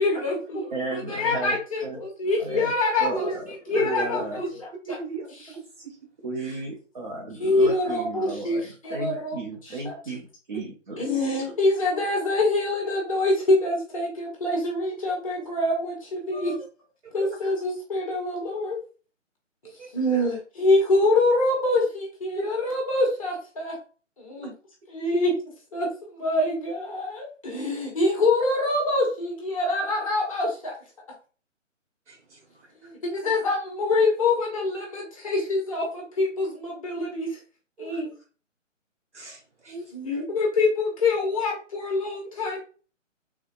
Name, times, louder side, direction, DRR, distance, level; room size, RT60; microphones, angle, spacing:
voice 1, 0.0-3.3 3.7-5.0 5.4-5.5 7.4-10.0 11.0-16.6 17.1-18.8 19.9-23.8 24.2-24.5 24.9-25.3 25.7-30.8 32.8-37.4 37.8-38.1 39.9-42.6, left 2 dB, 25° left, -1 dB, 0.8 m, -25 dB
voice 2, 0.7-1.6 1.8-2.0 2.4-2.7 3.0-4.4 6.2-11.0, right 2 dB, 40° right, -1 dB, 0.6 m, -34 dB
voice 3, 3.7-4.5 4.8-6.0 6.4-6.6 16.3-16.6 17.2-17.3 19.6-19.9 22.3-22.5 24.4-24.5 32.1-32.4 37.8-38.0 39.1-39.8, right 2 dB, 65° right, 0 dB, 1.5 m, -35 dB
3.4 x 2.7 x 2.4 m, 0.37 s
figure-of-eight pair, 150°, 38 cm